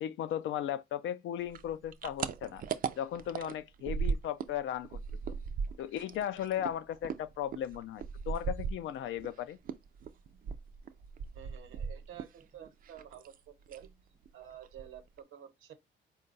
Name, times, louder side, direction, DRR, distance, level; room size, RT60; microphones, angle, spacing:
voice 1, 0.0-2.6 3.0-5.0 5.3-5.4 5.8-9.6, left 10 dB, 70° left, 0.4 m, -36 dB
sound 1, 1.5-4.6 4.8-9.3 9.7-12.4 12.7-13.4 13.7-13.9 14.3-14.4 14.6-15.2, right 6 dB, 45° right, 0.4 m, -37 dB
voice 2, 11.3-13.9 14.3-15.7, right 10 dB, 85° right, 0.9 m, -50 dB
4.5 x 2.2 x 3.8 m
cardioid pair, 160°, 21 cm